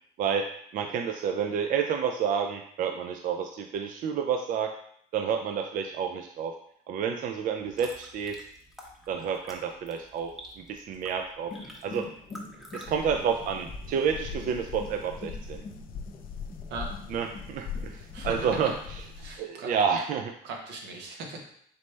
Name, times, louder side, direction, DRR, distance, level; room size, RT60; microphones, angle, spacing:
voice 1, 0.7-4.7 5.1-6.5 6.9-8.4 9.1-11.6 11.8-12.1 12.7-15.6 17.1-18.7 19.4-20.3, right 7 dB, 55° right, 5 dB, 0.4 m, -29 dB
sound 1, 7.5-12.9, equal, ahead, 0.8 m, -49 dB
sound 2, 11.4-19.1, left 3 dB, 35° left, 1.1 m, -47 dB
sound 3, 12.9-19.4, left 5 dB, 60° left, 0.5 m, -40 dB
voice 2, 18.1-18.7 19.2-19.7 20.4-21.4, right 3 dB, 85° right, 1 dB, 1.0 m, -39 dB
4.1 x 3.2 x 3.2 m, 0.66 s
cardioid pair, 110°, 17 cm